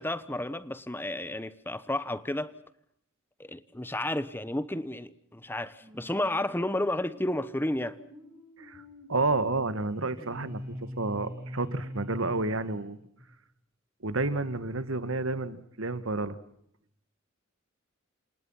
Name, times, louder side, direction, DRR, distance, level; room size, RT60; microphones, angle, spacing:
voice 1, 0.0-2.5 3.4-8.0, left 1 dB, 10° left, 1.0 m, -32 dB
sound 1, 5.8-13.4, equal, 15° right, 6.6 m, -44 dB
voice 2, 9.1-13.0 14.0-16.4, right 3 dB, 85° right, 1.8 m, -30 dB
29.0 x 27.0 x 5.7 m
head